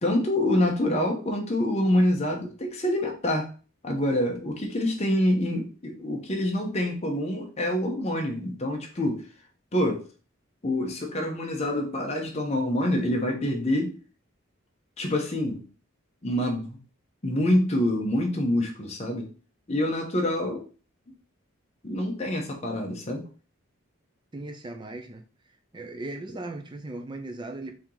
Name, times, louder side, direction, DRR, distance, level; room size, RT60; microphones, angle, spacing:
voice 1, 0.0-3.5 3.8-9.2 9.7-10.0 10.6-14.0 15.0-15.6 16.2-16.8 17.2-19.3 19.7-20.6 21.8-23.2, left 1 dB, 30° left, 0.9 m, -26 dB
voice 2, 24.3-25.2 25.7-27.7, right 2 dB, 20° right, 0.5 m, -37 dB
4.4 x 2.9 x 3.8 m
head